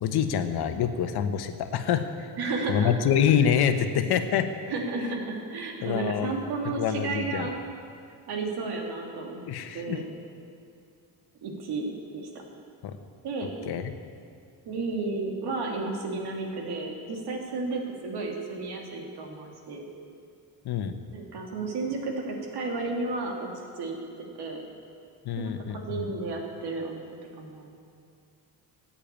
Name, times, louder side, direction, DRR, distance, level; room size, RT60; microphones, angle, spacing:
voice 1, 0.0-2.3 2.7-4.5 5.8-6.4 6.8-7.5 9.5-10.0 12.8-12.9 13.6-13.8 20.6-20.9 25.2-26.1, left 8 dB, 70° left, 8 dB, 1.2 m, -26 dB
voice 2, 2.4-2.9 4.7-7.5 8.3-9.4 9.7-10.0 11.4-12.3 13.2-13.5 14.7-19.9 21.1-24.0 24.4-24.6 25.4-27.1 27.4-27.7, right 3 dB, 75° right, 1 dB, 2.7 m, -32 dB
15.5 x 8.9 x 8.9 m, 2.4 s
cardioid pair, 150°, 39 cm